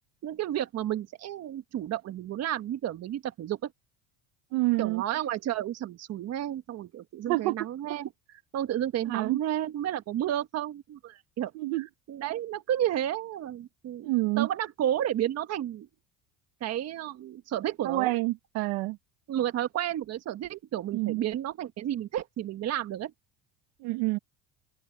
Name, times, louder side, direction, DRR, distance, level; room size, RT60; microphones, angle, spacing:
voice 1, 0.2-3.7 4.8-15.9 16.6-18.1 19.3-23.1, right 11 dB, 50° right, 1.5 m, -32 dB
voice 2, 4.5-5.0 7.3-7.5 9.1-9.4 11.6-11.9 14.0-14.5 17.8-19.0 20.9-21.2 23.8-24.2, right 21 dB, 80° right, 1.3 m, -27 dB
open air
supercardioid pair, 105°, 33 cm